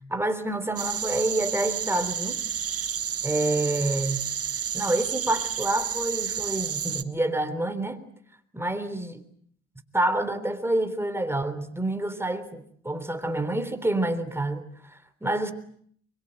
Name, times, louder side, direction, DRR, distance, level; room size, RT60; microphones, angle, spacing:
voice 1, 0.1-2.4 3.2-4.3 4.7-8.0 8.5-9.2 9.9-15.5, right 1 dB, 10° right, 10 dB, 3.5 m, -28 dB
sound 1, 0.8-7.0, right 8 dB, 50° right, 1.4 m, -30 dB
24.0 x 23.0 x 9.0 m, 0.63 s
cardioid pair, 90°, 30 cm